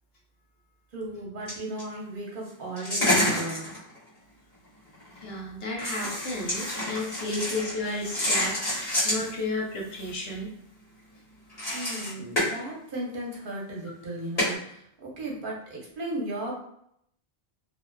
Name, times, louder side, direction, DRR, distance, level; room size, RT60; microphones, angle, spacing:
voice 1, 0.9-3.7 11.7-16.6, right 1 dB, 60° right, -4 dB, 0.9 m, -36 dB
sound 1, 1.5-1.8 2.8-4.1 4.9-5.4 5.8-9.3 9.7-10.3 11.5-12.5 13.3-13.4 14.4-14.5, left 1 dB, 40° left, 1.3 m, -28 dB
voice 2, 5.1-10.5, left 2 dB, 75° left, -2 dB, 1.0 m, -33 dB
2.6 x 2.3 x 2.2 m, 0.72 s
omnidirectional pair, 1.0 m